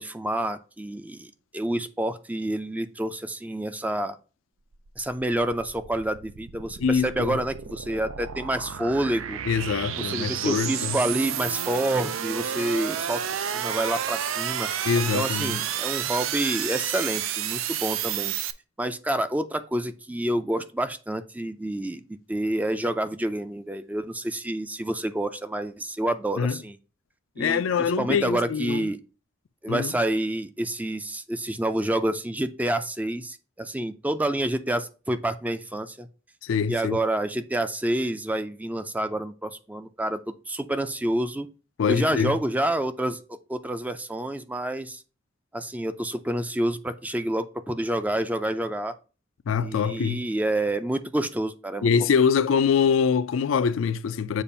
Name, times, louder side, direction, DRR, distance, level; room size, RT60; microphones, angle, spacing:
voice 1, 0.0-4.2 5.0-9.4 10.0-14.9 15.1-18.3 18.8-26.8 27.4-27.6 28.0-29.0 29.6-36.1 36.7-40.2 40.5-41.5 41.9-45.0 45.5-48.9 49.6-51.9, right 1 dB, 10° right, 0.4 m, -28 dB
sound 1, 4.7-18.5, right 9 dB, 85° right, 0.5 m, -31 dB
voice 2, 6.8-7.4 9.5-11.0 14.8-15.6 26.4-26.6 27.4-28.9 29.7-29.9 36.4-37.0 41.8-42.4 49.5-50.2 51.8-54.4, left 6 dB, 70° left, 0.4 m, -24 dB
6.9 x 2.5 x 5.4 m
head